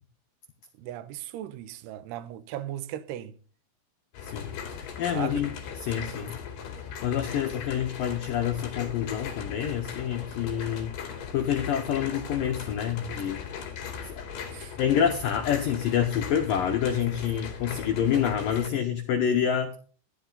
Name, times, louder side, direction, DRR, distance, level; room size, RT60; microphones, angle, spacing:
voice 1, 0.8-3.3 5.1-5.4 11.9-12.1 14.5-14.8, right 12 dB, 80° right, 2.5 m, -37 dB
sound 1, 4.1-18.7, left 7 dB, 60° left, 4.3 m, -38 dB
voice 2, 4.3-5.5 5.8-6.4 7.0-10.9 11.3-13.4 14.1-14.2 14.8-19.7, left 9 dB, 85° left, 1.9 m, -27 dB
15.0 x 11.5 x 4.0 m
omnidirectional pair, 5.6 m